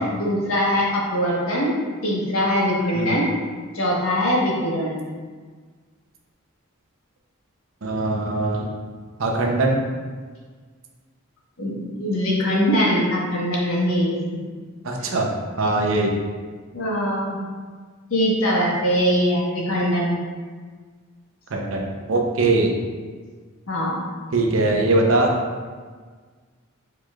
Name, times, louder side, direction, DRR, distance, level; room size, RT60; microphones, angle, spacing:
voice 1, 0.0-1.7 2.0-3.2 3.7-4.9 11.6-14.1 16.7-17.4 18.1-20.2 23.7-24.1, equal, 80° left, -4 dB, 1.3 m, -22 dB
voice 2, 7.8-8.7 9.2-9.8 14.8-15.3 15.6-16.1 21.5-22.7 24.3-25.4, right 2 dB, 70° right, 1 dB, 0.7 m, -21 dB
4.7 x 4.7 x 2.4 m, 1.5 s
head